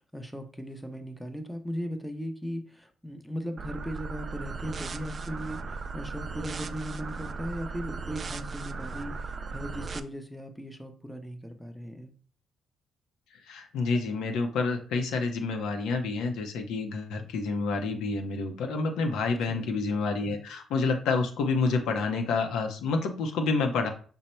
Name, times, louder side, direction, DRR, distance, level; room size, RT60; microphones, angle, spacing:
voice 1, 0.0-12.1 19.5-19.8, equal, ahead, 5 dB, 0.6 m, -38 dB
sound 1, 3.6-10.0, right 4 dB, 40° right, 0.3 m, -37 dB
voice 2, 13.5-23.9, left 4 dB, 85° left, 5 dB, 0.6 m, -28 dB
5.3 x 2.1 x 4.3 m, 0.42 s
cardioid pair, 90°, 0 cm